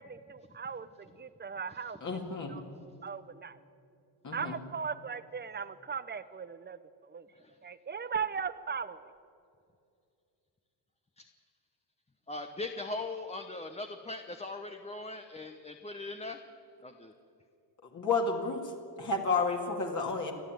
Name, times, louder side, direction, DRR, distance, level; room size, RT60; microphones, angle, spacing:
voice 1, 0.0-3.6 4.3-7.3 7.6-9.1, right 6 dB, 25° right, 14 dB, 0.9 m, -39 dB
voice 2, 2.0-2.5 4.2-4.6 17.9-18.6 19.0-20.3, left 4 dB, 40° left, 0 dB, 2.7 m, -31 dB
voice 3, 12.3-16.4 16.8-17.1, left 2 dB, 15° left, 5 dB, 1.0 m, -40 dB
29.5 x 11.0 x 9.3 m, 2.5 s
cardioid pair, 125°, 44 cm